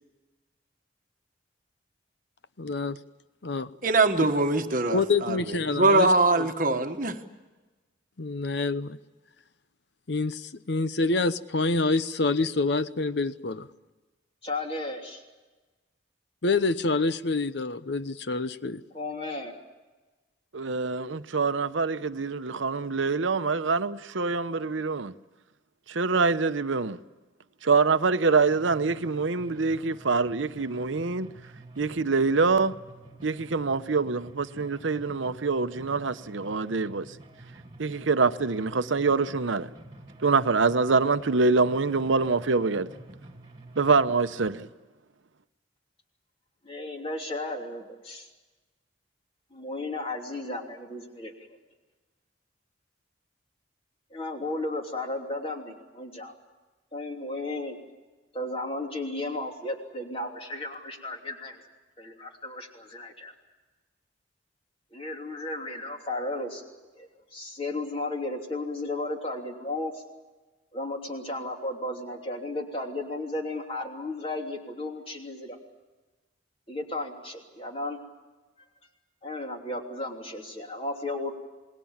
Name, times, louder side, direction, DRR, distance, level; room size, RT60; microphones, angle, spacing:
voice 1, 2.6-3.0 3.4-3.7 4.9-6.1 6.4-6.5 8.2-9.0 10.1-13.7 16.4-18.8, left 3 dB, 60° left, 0.8 m, -27 dB
voice 2, 3.8-7.2, right 2 dB, 45° right, 1.3 m, -23 dB
voice 3, 14.4-15.2 18.9-19.5 46.6-48.3 49.5-51.3 54.1-56.3 56.9-57.8 58.3-61.6 62.0-63.3 64.9-66.7 66.9-70.0 70.7-75.6 76.7-78.0 79.2-81.3, left 2 dB, 30° left, 3.1 m, -34 dB
voice 4, 20.5-25.1 25.9-27.0 27.6-31.3 31.8-32.7 33.2-37.2 37.8-39.7 40.2-42.9 43.8-44.7, right 4 dB, 80° right, 0.8 m, -25 dB
sound 1, 28.5-44.5, right 2 dB, 25° right, 2.3 m, -49 dB
28.0 x 20.5 x 7.3 m
head